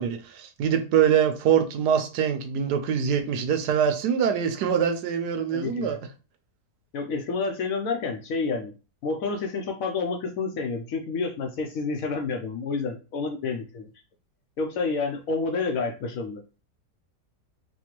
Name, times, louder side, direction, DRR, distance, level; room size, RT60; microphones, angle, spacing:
voice 1, 0.0-6.0, right 8 dB, 80° right, 1.2 m, -24 dB
voice 2, 5.5-6.0 6.9-8.7 9.0-13.9 14.6-16.4, left 4 dB, 65° left, 0.9 m, -29 dB
4.2 x 2.3 x 3.0 m
omnidirectional pair, 1.7 m